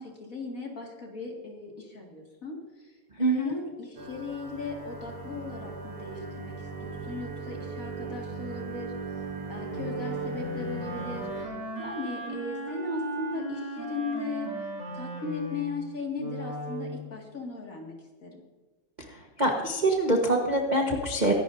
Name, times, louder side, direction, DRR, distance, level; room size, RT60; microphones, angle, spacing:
voice 1, 0.0-2.9 3.2-6.5 6.8-8.9 9.5-11.5 11.8-14.5 14.9-18.0 18.2-18.4, left 3 dB, 40° left, 0 dB, 2.4 m, -37 dB
voice 2, 3.2-3.5 19.4-21.3, right 2 dB, 30° right, 0 dB, 1.0 m, -24 dB
sound 1, 4.0-11.5, right 4 dB, 75° right, 3.6 m, -39 dB
Wind instrument woodwind instrument, 9.7-17.0, right 1 dB, 50° right, 3.5 m, -36 dB
23.5 x 11.5 x 2.7 m, 1.3 s
omnidirectional pair, 2.4 m